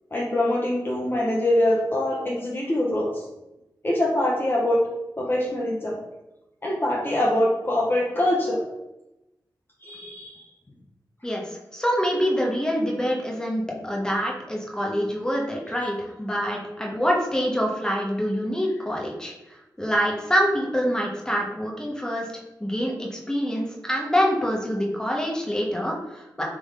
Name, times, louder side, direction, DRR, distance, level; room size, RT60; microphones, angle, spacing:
voice 1, 0.1-3.2 3.8-4.8 5.2-6.0 6.6-8.6 9.8-10.5, left 1 dB, 30° left, -4 dB, 0.7 m, -24 dB
voice 2, 11.2-22.3 22.6-26.4, equal, 10° left, -2 dB, 1.0 m, -26 dB
3.6 x 3.0 x 3.7 m, 0.95 s
cardioid pair, 60°, 8 cm